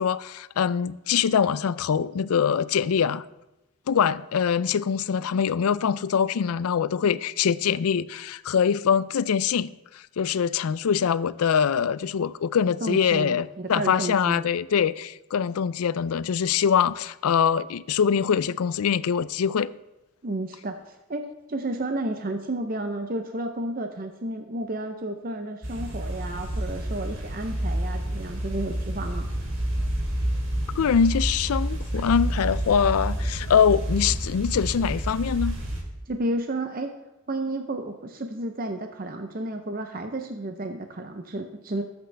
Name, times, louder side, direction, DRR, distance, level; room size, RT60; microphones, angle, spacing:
voice 1, 0.0-3.2 3.9-19.7 30.8-35.6, left 7 dB, 85° left, 0.4 m, -23 dB
voice 2, 12.8-14.4 20.2-29.3 36.1-37.0 37.3-41.8, right 1 dB, 40° right, 0.7 m, -32 dB
sound 1, 25.6-35.8, right 1 dB, 60° right, 2.8 m, -29 dB
18.5 x 8.1 x 3.4 m
head